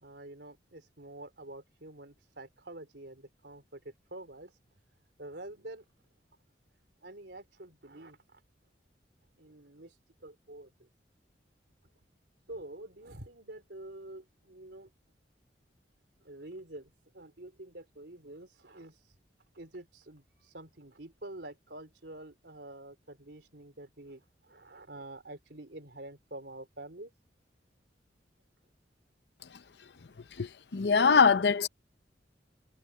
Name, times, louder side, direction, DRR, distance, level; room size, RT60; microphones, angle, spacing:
voice 1, 0.0-4.5 5.2-5.8 7.0-8.4 9.4-9.9 10.2-10.9 12.5-14.9 16.2-19.0 19.5-27.1, right 1 dB, 70° right, 3.8 m, -47 dB
voice 2, 30.4-31.7, left 5 dB, 70° left, 0.7 m, -23 dB
head